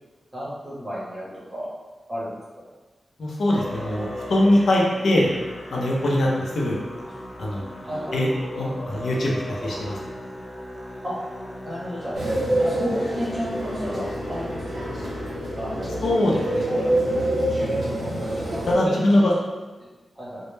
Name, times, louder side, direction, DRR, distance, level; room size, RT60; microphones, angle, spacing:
voice 1, 0.3-1.7 2.1-2.3 2.6-2.7 7.8-8.1 11.0-11.1 11.6-12.1 12.6-14.8 15.6-15.9 16.4-17.0 17.4-18.1 18.8-19.3 20.1-20.4, equal, 20° right, -8 dB, 0.8 m, -33 dB
voice 2, 3.2-5.3 5.7-6.8 7.4-7.7 8.1-8.3 8.6-10.0 16.0-16.7 18.7-19.3, left 1 dB, 70° left, -3 dB, 0.4 m, -22 dB
Musical instrument, 3.5-15.4, left 1 dB, 10° left, 0.4 m, -37 dB
sound 1, 12.1-18.7, right 1 dB, 65° right, 0.7 m, -26 dB
2.1 x 2.0 x 3.0 m, 1.2 s
wide cardioid pair, 145°, 0 cm